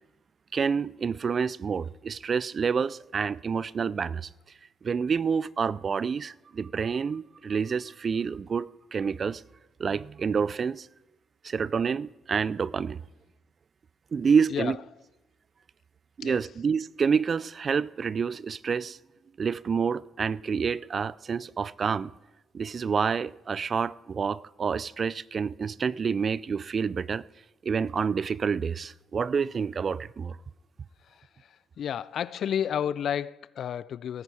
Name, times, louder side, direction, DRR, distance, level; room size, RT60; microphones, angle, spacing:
voice 1, 0.5-4.3 4.8-9.4 9.8-10.9 11.4-13.0 14.1-14.8 16.2-19.0 19.4-22.1 22.5-27.2 27.6-30.4, right 6 dB, 45° right, 0.4 m, -28 dB
voice 2, 31.1-34.2, left 9 dB, 65° left, 0.4 m, -31 dB
17.5 x 10.0 x 4.8 m
cardioid pair, 90°, 0 cm